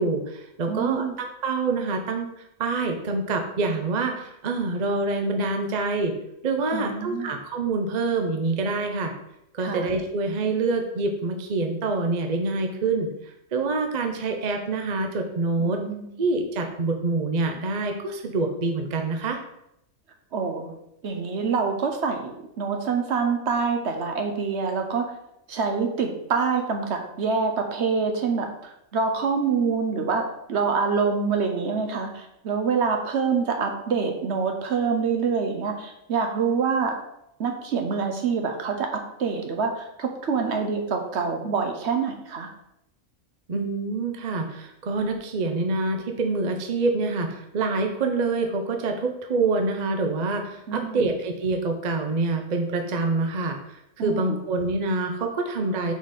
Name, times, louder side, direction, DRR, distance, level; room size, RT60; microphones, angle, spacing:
voice 1, 0.0-2.3 2.6-6.1 6.4-9.1 9.6-13.1 13.5-15.8 16.2-19.4 43.5-53.6 54.0-55.9, right 3 dB, 40° right, 3 dB, 0.6 m, -26 dB
voice 2, 0.7-1.2 6.6-7.3 9.6-9.9 15.6-16.2 20.3-20.7 21.0-25.1 25.5-36.9 37.4-42.5 50.7-51.1 54.0-54.4, right 5 dB, 60° right, 4 dB, 1.0 m, -26 dB
6.1 x 3.9 x 4.1 m, 0.80 s
omnidirectional pair, 1.4 m